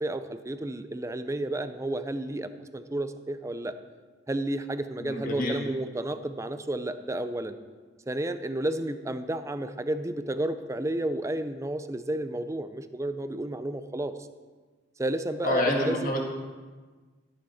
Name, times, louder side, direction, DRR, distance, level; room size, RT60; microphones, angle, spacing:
voice 1, 0.0-3.7 4.3-7.6 8.1-14.1 15.0-16.1, right 1 dB, 15° right, 11 dB, 0.5 m, -31 dB
voice 2, 5.0-5.5 15.4-16.2, left 1 dB, 45° left, 0 dB, 2.2 m, -27 dB
13.5 x 10.0 x 4.3 m, 1.4 s
head